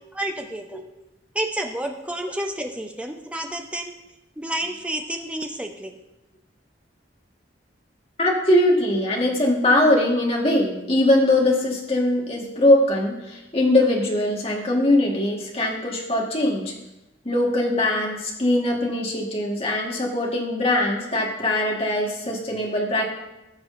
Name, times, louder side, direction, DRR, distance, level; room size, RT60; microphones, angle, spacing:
voice 1, 0.1-0.8 1.3-3.9 4.4-6.0, right 1 dB, 5° right, 4 dB, 0.6 m, -30 dB
voice 2, 8.2-16.7 17.2-23.1, left 1 dB, 30° left, -2 dB, 1.6 m, -21 dB
16.0 x 6.2 x 2.6 m, 0.95 s
head